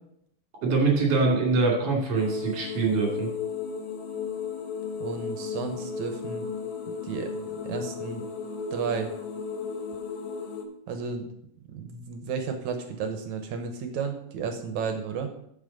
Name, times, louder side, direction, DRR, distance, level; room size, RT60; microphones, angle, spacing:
voice 1, 0.6-3.3, right 3 dB, 50° right, -1 dB, 3.6 m, -24 dB
sound 1, 2.1-10.6, left 5 dB, 65° left, 2.2 m, -34 dB
voice 2, 5.0-6.4 7.0-8.2 8.7-9.1 10.9-11.3 11.7-15.3, right 5 dB, 70° right, 6 dB, 2.2 m, -33 dB
8.9 x 7.3 x 5.3 m, 0.72 s
omnidirectional pair, 3.7 m